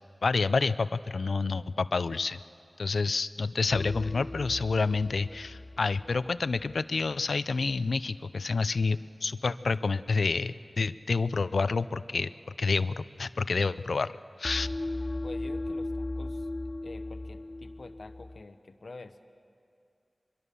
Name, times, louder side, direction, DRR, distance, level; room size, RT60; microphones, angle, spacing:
voice 1, 0.2-2.4 2.8-12.3 12.6-14.1 14.4-14.7, left 4 dB, 90° left, 15 dB, 0.5 m, -28 dB
sound 1, 3.7-6.8 14.4-18.4, left 2 dB, 30° left, 0.5 m, -37 dB
voice 2, 15.2-16.5 16.8-19.2, left 3 dB, 70° left, 9 dB, 1.0 m, -47 dB
23.5 x 22.5 x 6.9 m, 2.4 s
wide cardioid pair, 70°, 0 cm